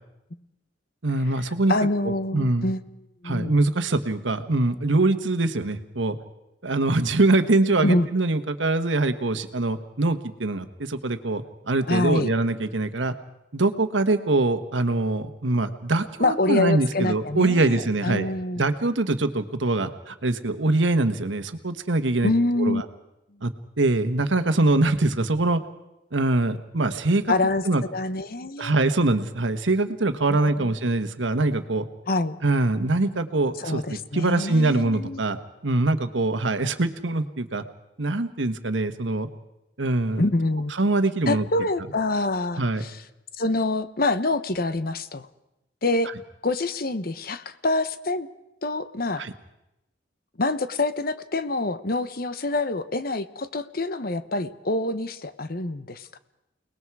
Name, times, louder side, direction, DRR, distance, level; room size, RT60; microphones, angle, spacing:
voice 1, 1.0-1.7 2.3-2.7 3.2-6.2 6.6-13.1 13.5-18.3 18.6-22.3 22.6-22.8 23.4-23.5 23.8-25.6 26.1-27.3 27.6-27.8 28.6-31.9 32.4-35.4 35.6-37.6 38.0-39.3 39.8-40.3 40.8-41.4 42.6-42.8 49.2-49.3, right 2 dB, 85° right, 9 dB, 1.3 m, -23 dB
voice 2, 1.7-2.8 3.2-3.5 7.8-8.1 11.9-12.3 16.2-18.6 22.2-22.8 27.3-27.6 27.9-28.7 30.3-30.7 32.1-32.4 33.6-35.2 40.2-40.7 41.3-43.0 43.4-45.3 45.8-46.1 46.4-48.3 48.6-49.3 50.4-56.2, left 2 dB, 50° left, 12 dB, 1.0 m, -26 dB
29.5 x 19.5 x 4.8 m, 0.91 s
head